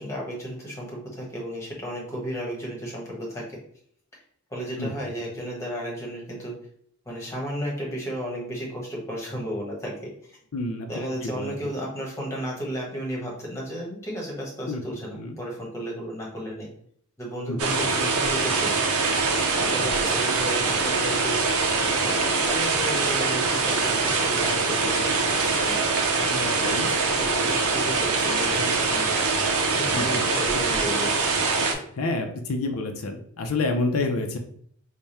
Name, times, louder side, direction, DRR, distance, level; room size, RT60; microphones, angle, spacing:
voice 1, 0.0-3.4 4.5-6.5 7.1-10.3 10.9-16.7 17.2-18.9 19.6-21.4 22.0-26.9 27.2-31.1, equal, 15° left, -3 dB, 1.0 m, -34 dB
voice 2, 10.5-10.9 11.2-11.5 14.7-14.8 15.1-15.4 17.5-17.8 26.4-26.9 29.9-30.3 31.6-34.4, left 3 dB, 85° left, 4 dB, 0.5 m, -29 dB
sound 1, 17.6-31.7, right 4 dB, 80° right, 0.6 m, -23 dB
3.4 x 2.2 x 4.2 m, 0.63 s
head